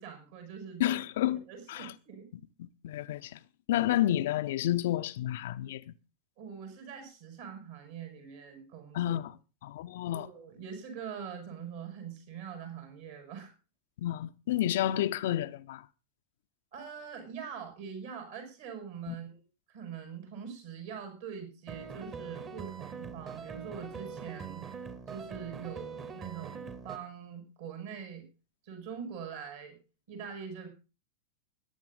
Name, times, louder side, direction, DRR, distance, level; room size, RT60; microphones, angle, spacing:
voice 1, 0.0-1.0 1.5-2.3 6.4-9.2 10.1-13.5 16.7-19.4 19.7-24.7 25.1-28.2 28.6-29.8 30.1-30.7, right 7 dB, 55° right, 7.0 m, -43 dB
voice 2, 0.8-1.9 2.6-3.4 3.7-5.9 8.9-9.3 9.6-10.3 14.0-15.8 19.1-19.2, left 13 dB, 55° left, 0.7 m, -30 dB
sound 1, 21.7-27.0, right 5 dB, 25° right, 1.8 m, -43 dB
14.5 x 10.5 x 5.5 m
figure-of-eight pair, 90°, 0 cm